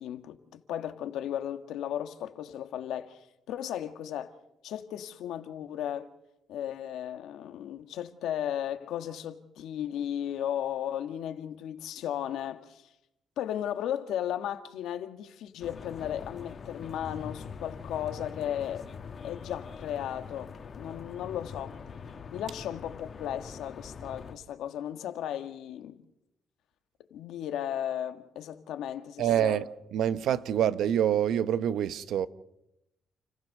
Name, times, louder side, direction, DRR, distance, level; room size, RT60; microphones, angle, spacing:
voice 1, 0.0-4.4 4.6-6.1 6.5-12.9 13.4-18.9 19.2-21.8 22.3-26.0 27.1-29.6, left 10 dB, 85° left, 1.6 m, -35 dB
sound 1, 15.6-24.4, left 5 dB, 50° left, 2.0 m, -43 dB
voice 2, 29.2-29.6 29.9-32.3, right 10 dB, 75° right, 1.0 m, -26 dB
29.5 x 15.5 x 6.7 m
cardioid pair, 90°, 0 cm